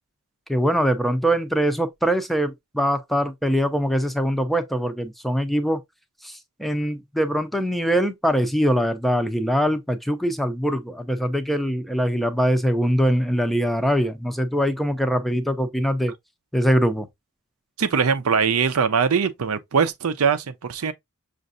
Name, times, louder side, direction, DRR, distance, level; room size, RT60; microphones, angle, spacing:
voice 1, 0.5-5.8 6.2-16.1 16.5-17.1, equal, ahead, 0.5 m, -22 dB
voice 2, 17.8-20.9, right 6 dB, 75° right, 0.5 m, -21 dB
6.4 x 2.5 x 2.5 m
head